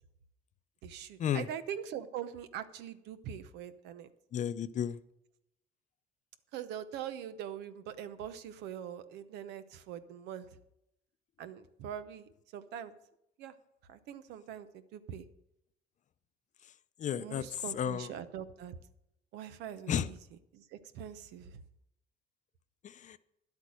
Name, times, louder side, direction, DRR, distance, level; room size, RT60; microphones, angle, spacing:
voice 1, 0.8-4.1 6.5-10.5 11.4-12.9 13.4-13.5 13.9-15.3 17.2-18.7 19.3-20.2 20.5-21.6, right 9 dB, 85° right, 12 dB, 0.9 m, -43 dB
voice 2, 4.3-5.0 17.0-18.1 19.9-20.1 22.8-23.2, left 9 dB, 45° left, 14 dB, 0.6 m, -33 dB
10.5 x 8.3 x 6.3 m, 0.82 s
cardioid pair, 110°, 17 cm